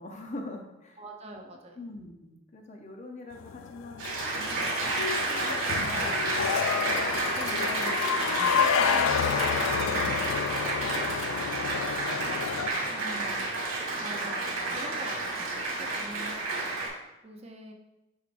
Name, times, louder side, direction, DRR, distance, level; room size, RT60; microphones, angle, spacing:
voice 1, 0.0-1.0 1.5-4.1 4.3-4.8 5.1-6.2 6.8-9.9 10.5-11.7 12.6-12.8 14.0-14.2, left 2 dB, 35° left, 2 dB, 0.7 m, -44 dB
voice 2, 1.0-1.8 7.5-7.9 12.9-13.4 14.0-16.7 17.2-17.7, right 1 dB, 30° right, 1 dB, 0.7 m, -44 dB
sound 1, 3.4-12.7, left 7 dB, 70° left, 0.3 m, -30 dB
Applause, 4.0-16.9, right 2 dB, 80° right, 2.1 m, -30 dB
6.4 x 5.9 x 2.6 m, 0.98 s
head